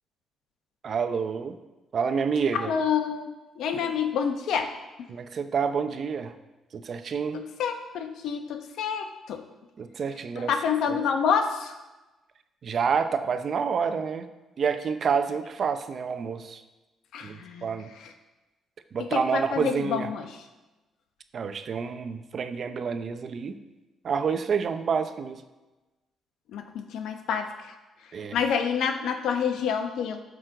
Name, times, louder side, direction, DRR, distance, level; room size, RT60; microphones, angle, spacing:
voice 1, 0.8-1.6 1.9-2.7 3.7-3.9 5.1-6.3 6.7-7.4 9.8-10.5 10.9-11.0 12.6-14.3 14.6-16.6 17.2-17.9 18.9-20.1 21.3-23.6 24.0-25.4 28.1-28.4, right 6 dB, 50° right, 9 dB, 0.8 m, -28 dB
voice 2, 2.6-4.7 7.3-9.4 10.4-11.7 17.1-17.7 19.1-20.3 26.5-27.5 28.3-30.2, left 7 dB, 80° left, 6 dB, 0.9 m, -28 dB
12.5 x 6.2 x 3.9 m, 1.1 s
cardioid pair, 90°, 0 cm